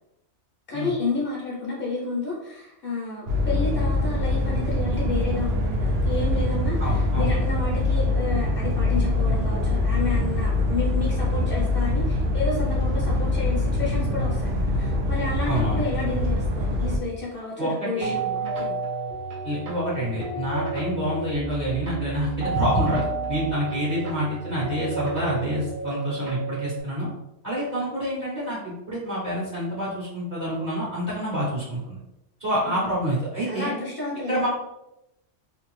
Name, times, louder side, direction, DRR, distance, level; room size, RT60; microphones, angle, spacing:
voice 1, 0.7-18.8 32.6-32.9 33.4-34.5, left 3 dB, 60° left, -4 dB, 0.8 m, -31 dB
sound 1, 3.3-17.0, left 2 dB, 90° right, 0.9 m, -24 dB
voice 2, 6.8-7.4 15.4-15.8 17.6-18.1 19.4-27.1 27.4-32.0 32.4-33.7 34.3-34.5, equal, 40° right, -7 dB, 0.9 m, -27 dB
sound 2, 18.0-26.8, right 4 dB, 55° right, 0.6 m, -31 dB
2.6 x 2.3 x 3.0 m, 0.88 s
omnidirectional pair, 1.2 m